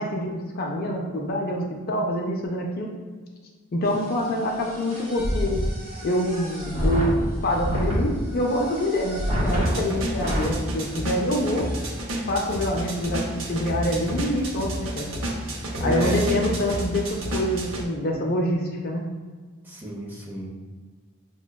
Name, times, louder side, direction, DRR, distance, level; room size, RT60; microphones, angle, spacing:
voice 1, 0.0-2.9 3.7-5.6 6.0-11.7 12.3-15.1 15.8-19.1, left 1 dB, 45° left, 0 dB, 0.4 m, -26 dB
sound 1, 3.9-10.5 11.1-11.2 11.4-11.9, equal, 25° right, 1.3 m, -28 dB
sound 2, 9.5-17.8, right 1 dB, 60° right, 0.6 m, -30 dB
voice 2, 15.8-16.2 19.6-20.5, equal, 10° right, -3 dB, 0.6 m, -30 dB
5.9 x 2.2 x 2.2 m, 1.5 s
head